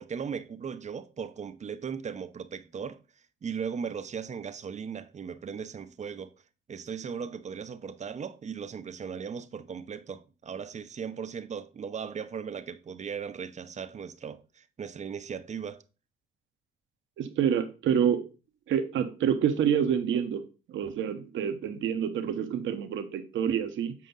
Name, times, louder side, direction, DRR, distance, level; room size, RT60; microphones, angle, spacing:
voice 1, 0.0-3.0 3.4-6.3 6.7-15.8, right 6 dB, 35° right, 0.7 m, -37 dB
voice 2, 17.2-18.3 18.7-20.4 20.7-23.9, right 8 dB, 70° right, 1.0 m, -27 dB
7.5 x 4.9 x 3.9 m
cardioid pair, 90°, 21 cm